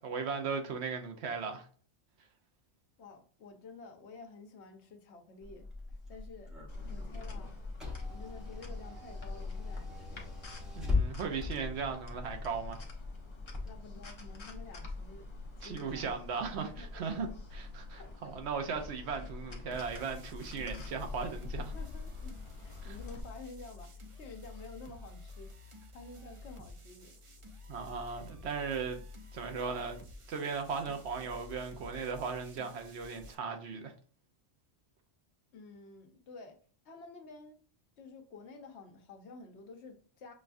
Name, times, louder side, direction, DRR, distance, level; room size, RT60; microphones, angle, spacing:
voice 1, 0.0-1.7 10.8-12.8 15.6-17.3 17.5-21.7 22.8-22.9 27.7-29.0 29.3-30.0 30.3-33.9, right 5 dB, 70° right, 0.9 m, -37 dB
voice 2, 3.0-5.7 6.1-6.6 6.9-7.5 8.1-10.3 13.6-15.3 15.6-17.4 18.0-18.4 21.7-22.3 22.6-27.2 35.5-36.6 36.8-37.6 38.0-40.3, left 3 dB, 70° left, 1.0 m, -51 dB
Car / Engine, 5.4-13.7, left 4 dB, ahead, 0.9 m, -39 dB
sound 1, 6.7-23.2, left 3 dB, 30° left, 0.7 m, -44 dB
sound 2, 19.7-33.3, left 2 dB, 45° right, 0.4 m, -50 dB
6.1 x 2.3 x 2.5 m
omnidirectional pair, 1.2 m